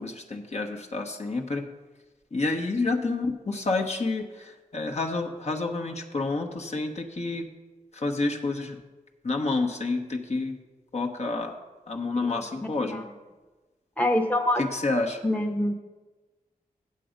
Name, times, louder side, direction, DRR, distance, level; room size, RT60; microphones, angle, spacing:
voice 1, 0.0-1.7 2.3-7.5 7.9-8.8 9.2-10.6 10.9-11.6 11.9-13.0 14.6-15.2, left 3 dB, 45° left, 1 dB, 1.1 m, -29 dB
voice 2, 14.0-14.6 15.2-15.7, left 1 dB, 10° left, 3 dB, 0.9 m, -24 dB
7.8 x 7.6 x 5.2 m, 1.2 s
cardioid pair, 55°, 15 cm